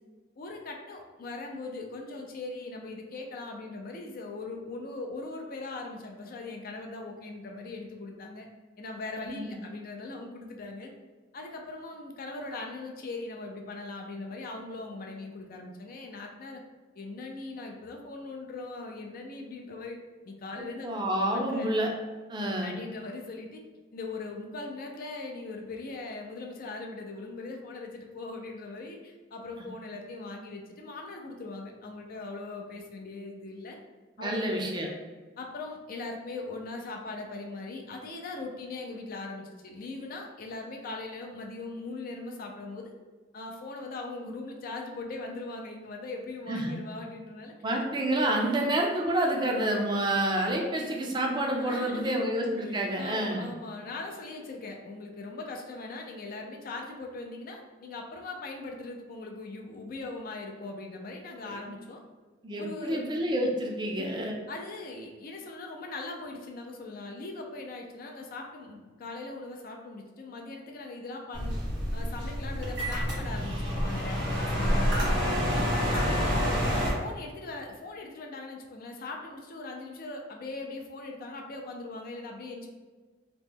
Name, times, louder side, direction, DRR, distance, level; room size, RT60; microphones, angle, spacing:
voice 1, 0.4-8.5 8.8-10.9 11.3-16.6 17.0-20.0 20.2-20.9 21.2-21.7 22.6-23.6 23.9-33.8 34.2-35.0 35.4-42.9 43.3-47.5 48.4-48.7 51.6-52.2 52.6-62.0 62.6-63.0 63.9-64.2 64.5-71.6 71.9-75.1 75.5-82.7, left 3 dB, 50° left, 2 dB, 0.4 m, -40 dB
voice 2, 20.6-21.9 22.3-22.8 34.2-34.9 46.5-46.8 47.6-53.5 61.4-61.5 62.4-64.3, right 1 dB, 25° right, 0 dB, 0.4 m, -28 dB
sound 1, 71.3-76.9, equal, 85° right, 1.4 m, -28 dB
2.9 x 2.1 x 3.4 m, 1.3 s
head